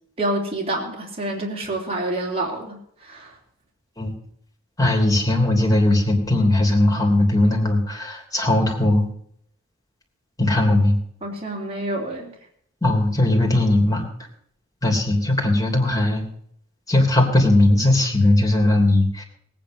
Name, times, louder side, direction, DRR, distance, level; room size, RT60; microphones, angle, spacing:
voice 1, 0.2-3.3 11.2-12.4, right 1 dB, 30° right, -2 dB, 3.0 m, -28 dB
voice 2, 4.8-9.1 10.4-11.0 12.8-14.0 14.8-16.2 16.9-19.2, left 1 dB, 15° left, 0 dB, 3.2 m, -18 dB
18.5 x 9.4 x 6.3 m, 0.66 s
head